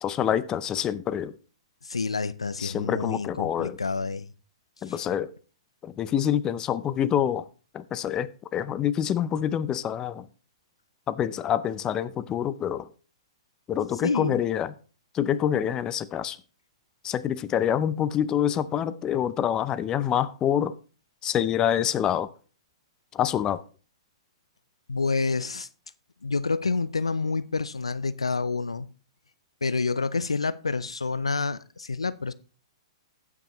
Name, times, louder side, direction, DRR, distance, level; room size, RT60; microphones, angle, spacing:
voice 1, 0.0-1.3 2.6-3.8 4.8-5.3 5.8-7.4 7.7-10.3 11.1-12.9 13.7-14.7 15.1-16.4 17.0-20.7 21.2-22.3 23.1-23.6, left 10 dB, 25° left, 0.5 m, -26 dB
voice 2, 1.8-4.3 4.9-5.0 14.0-14.4 24.9-25.7 26.2-28.9 29.6-32.3, left 4 dB, 90° left, 0.5 m, -28 dB
16.5 x 6.0 x 3.0 m
hypercardioid pair, 120°, 3 cm